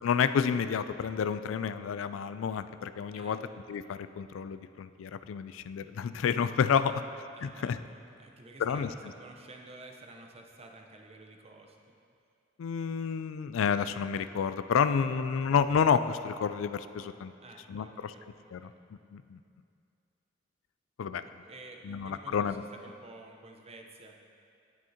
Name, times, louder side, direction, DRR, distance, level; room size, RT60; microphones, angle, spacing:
voice 1, 0.0-3.4 3.7-6.9 7.4-7.8 8.6-8.9 12.6-17.3 17.7-18.1 18.5-18.7 19.1-19.4 21.0-21.2 21.8-22.6, left 7 dB, 80° left, 12 dB, 0.3 m, -29 dB
voice 2, 7.3-11.8 14.8-15.3 17.0-17.1 17.4-18.8 21.2-24.2, right 2 dB, 30° right, 2 dB, 0.8 m, -51 dB
18.0 x 6.3 x 2.9 m, 2.4 s
head